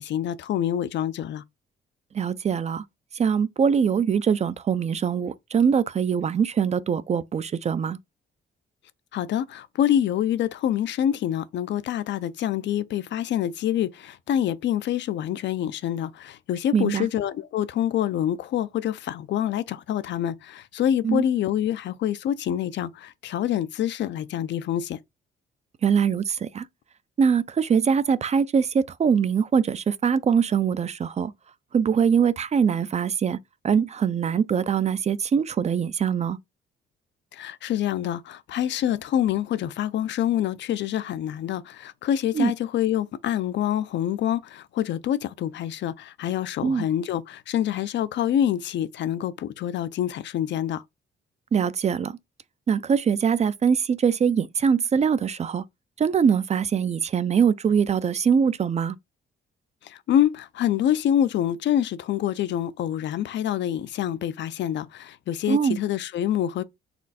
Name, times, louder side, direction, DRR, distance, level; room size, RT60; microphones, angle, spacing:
voice 1, 0.0-1.4 9.1-25.0 37.3-50.8 59.8-66.6, left 10 dB, 65° left, 0.5 m, -26 dB
voice 2, 2.1-2.8 3.1-8.0 16.7-17.1 21.0-21.2 25.8-26.7 27.2-31.3 31.7-33.4 33.6-36.4 42.3-42.5 46.6-46.9 51.5-52.2 52.7-55.6 56.0-59.0 65.5-65.8, right 7 dB, 35° right, 0.4 m, -23 dB
4.3 x 2.4 x 4.0 m
cardioid pair, 90°, 20 cm